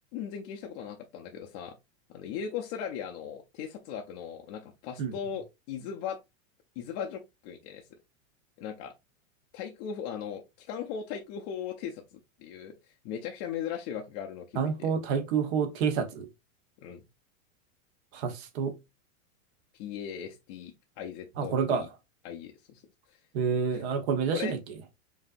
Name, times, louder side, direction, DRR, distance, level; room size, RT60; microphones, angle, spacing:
voice 1, 0.1-1.7 2.1-6.2 6.8-7.9 8.6-8.9 9.5-12.0 12.4-12.7 13.0-14.9 16.8-17.0 19.8-21.9 22.2-22.8 23.1-23.2 23.7-23.8 24.3-24.6, left 8 dB, 35° left, 0.5 m, -38 dB
voice 2, 14.6-16.3 18.1-18.7 21.4-21.9 23.3-24.6, right 6 dB, 50° right, 1.0 m, -28 dB
5.0 x 2.7 x 2.5 m
supercardioid pair, 150°, 41 cm